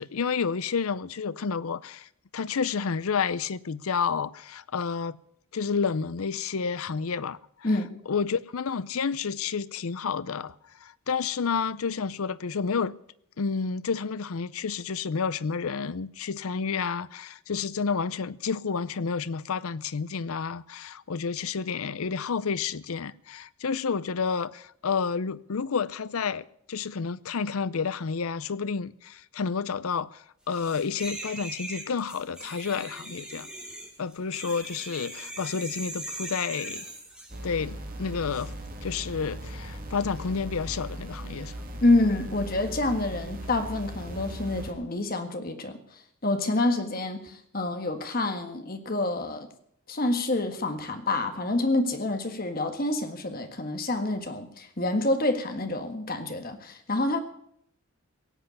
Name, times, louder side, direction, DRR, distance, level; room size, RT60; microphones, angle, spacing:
voice 1, 0.0-5.2 5.5-7.7 8.1-10.6 10.8-12.9 13.4-33.5 34.0-36.9 37.4-38.5 38.8-41.5, left 5 dB, 75° left, 0.6 m, -30 dB
sound 1, 30.5-37.4 38.3-38.5, right 1 dB, 5° right, 2.5 m, -40 dB
sound 2, 37.3-44.7, right 1 dB, 40° right, 2.6 m, -38 dB
voice 2, 41.8-45.8 46.2-49.5 49.9-57.2, left 2 dB, 40° left, 1.7 m, -27 dB
17.5 x 8.0 x 9.6 m
head